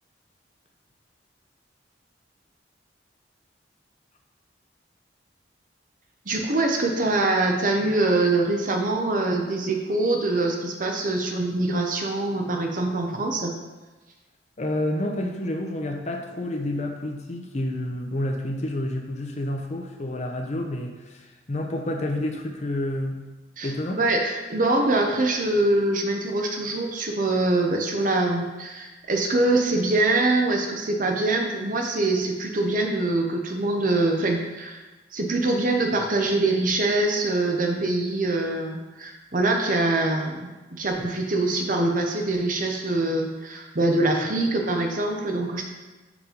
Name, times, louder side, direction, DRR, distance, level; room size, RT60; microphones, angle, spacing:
voice 1, 6.3-13.5 23.6-23.7 24.0-34.8 35.1-45.6, right 2 dB, 45° right, 2 dB, 0.8 m, -24 dB
voice 2, 14.6-23.2 23.6-24.0, left 1 dB, 35° left, 2 dB, 0.7 m, -29 dB
5.4 x 5.0 x 5.1 m, 1.2 s
head